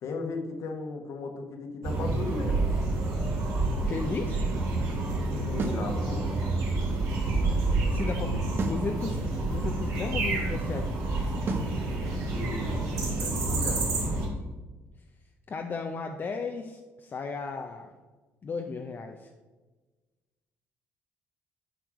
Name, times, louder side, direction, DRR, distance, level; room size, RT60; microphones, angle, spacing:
voice 1, 0.0-2.7 5.3-6.4 12.0-12.8 13.1-13.8, left 4 dB, 65° left, 4 dB, 1.3 m, -37 dB
sound 1, 1.8-14.3, right 2 dB, 70° right, 2.4 m, -28 dB
voice 2, 3.9-4.4 7.9-10.9 15.5-17.9 18.4-19.3, left 4 dB, 40° left, 3 dB, 0.6 m, -35 dB
sound 2, 5.6-5.9 8.6-8.9 11.5-11.8, right 3 dB, 40° right, 1.0 m, -31 dB
8.0 x 4.7 x 4.8 m, 1.2 s
cardioid pair, 85°, 6 cm